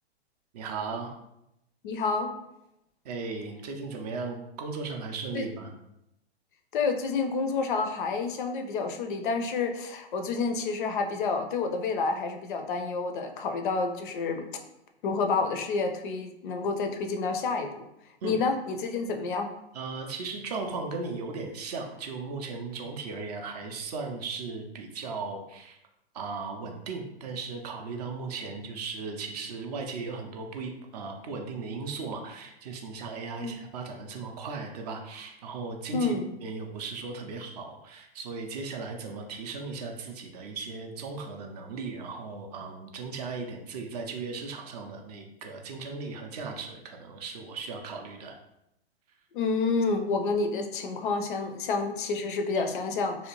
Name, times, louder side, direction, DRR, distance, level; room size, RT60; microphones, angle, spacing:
voice 1, 0.5-1.1 3.0-5.7 18.2-18.4 19.7-25.8 26.1-36.1 36.4-48.4, right 4 dB, 40° right, 3 dB, 0.4 m, -37 dB
voice 2, 1.8-2.3 5.3-5.4 6.7-14.5 15.0-17.9 18.2-19.5 33.4-33.6 35.9-36.3 49.3-53.3, left 4 dB, 50° left, 5 dB, 0.4 m, -29 dB
2.7 x 2.0 x 2.8 m, 0.84 s
figure-of-eight pair, 110°, 32 cm